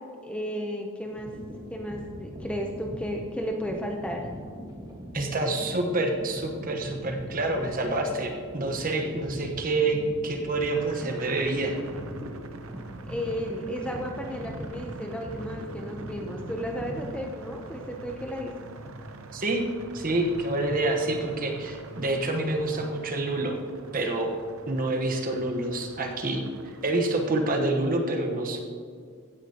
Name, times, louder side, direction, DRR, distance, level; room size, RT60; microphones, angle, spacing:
voice 1, 0.2-1.3 1.7-4.3 13.1-18.5, equal, 5° left, 1 dB, 0.6 m, -33 dB
sound 1, 1.0-17.1, equal, 20° right, 1.5 m, -41 dB
voice 2, 5.1-11.8 19.3-19.6 19.9-23.6 23.9-24.3 24.7-26.4 26.8-28.6, right 2 dB, 40° right, 3 dB, 1.1 m, -27 dB
sound 2, 10.7-27.8, right 3 dB, 65° right, 0.7 m, -45 dB
15.5 x 9.8 x 2.9 m, 2.1 s
head